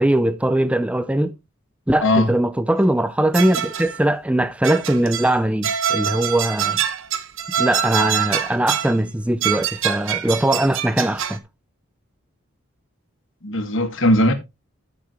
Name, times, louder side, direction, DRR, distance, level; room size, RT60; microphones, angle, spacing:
voice 1, 0.0-1.3 1.9-6.8 7.6-11.4, right 1 dB, 5° right, 0.5 m, -20 dB
sound 1, 3.3-4.0 4.6-5.4 5.6-9.0 9.4-11.4, right 9 dB, 70° right, 0.9 m, -25 dB
voice 2, 13.4-14.3, left 1 dB, 65° left, 1.8 m, -18 dB
13.0 x 6.6 x 3.0 m
head